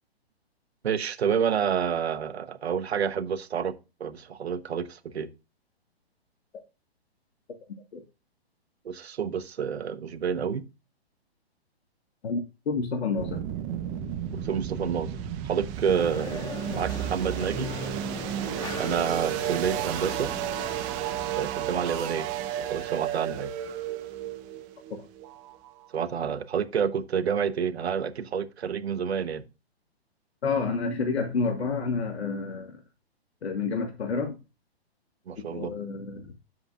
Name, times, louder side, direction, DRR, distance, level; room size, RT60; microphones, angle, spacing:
voice 1, 0.8-3.7 4.0-5.3 8.8-10.6 14.4-15.2 15.4-17.7 18.7-20.3 21.4-22.3 22.6-23.5 25.9-29.4 35.3-35.7, right 7 dB, 75° right, 1.2 m, -29 dB
voice 2, 12.2-13.4 30.4-32.7 33.4-34.3 35.5-36.3, left 4 dB, 75° left, 1.8 m, -29 dB
sound 1, 13.2-26.0, right 9 dB, 30° right, 1.1 m, -33 dB
sound 2, 15.9-21.0, left 2 dB, 15° left, 2.1 m, -40 dB
9.8 x 7.7 x 2.5 m
hypercardioid pair, 130°, 32 cm